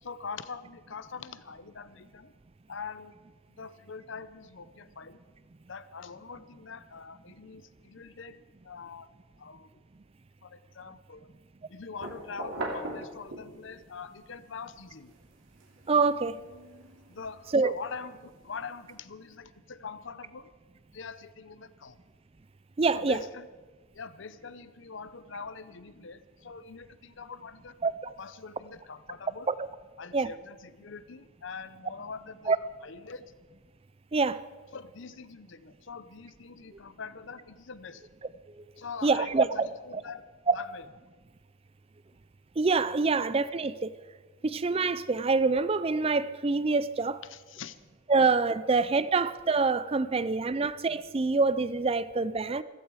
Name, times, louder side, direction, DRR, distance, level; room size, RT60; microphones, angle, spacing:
voice 1, 0.0-2.3 2.7-3.1 3.6-5.2 5.7-9.1 9.4-9.7 10.4-11.3 11.7-15.1 17.1-20.5 20.9-22.0 22.9-23.5 23.9-27.7 28.2-29.5 30.0-32.5 32.8-33.3 34.7-38.1 38.8-40.2 40.5-40.8 47.2-47.8, left 5 dB, 65° left, 0.7 m, -43 dB
sound 1, 12.0-13.8 14.3-18.9, right 1 dB, 70° right, 2.8 m, -42 dB
voice 2, 15.9-16.4 17.5-17.7 22.8-23.2 27.8-28.1 29.5-29.7 30.1-30.3 32.5-32.6 34.1-34.4 39.0-39.7 39.9-40.0 40.5-40.6 42.6-43.9 44.4-47.2 48.1-52.6, right 4 dB, 30° right, 0.4 m, -26 dB
15.5 x 15.0 x 4.8 m
head